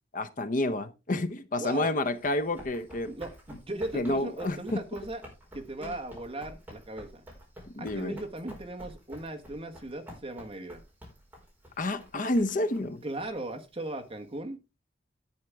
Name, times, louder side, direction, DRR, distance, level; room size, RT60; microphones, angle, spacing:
voice 1, 0.1-3.1 3.9-4.8 5.8-5.9 7.7-8.2 11.8-13.0, left 2 dB, 45° left, 0.8 m, -29 dB
voice 2, 1.6-1.9 3.1-5.2 5.5-7.2 7.8-10.8 13.0-14.6, right 2 dB, 30° right, 1.5 m, -38 dB
Run, 2.1-14.3, equal, 10° right, 4.6 m, -50 dB
10.5 x 8.8 x 3.5 m
head